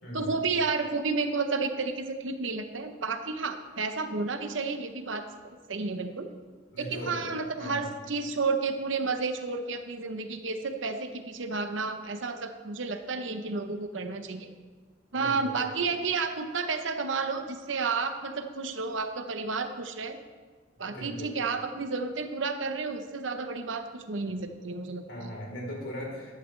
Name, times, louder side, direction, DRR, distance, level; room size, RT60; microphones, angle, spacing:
voice 1, 0.1-6.3 6.8-14.5 15.1-20.2 20.8-25.0, right 4 dB, 80° right, 7 dB, 0.8 m, -31 dB
voice 2, 6.7-7.2 7.6-7.8 15.2-15.4 20.8-21.3 25.1-26.4, equal, 75° left, -3 dB, 3.8 m, -38 dB
14.5 x 11.5 x 3.3 m, 1.5 s
head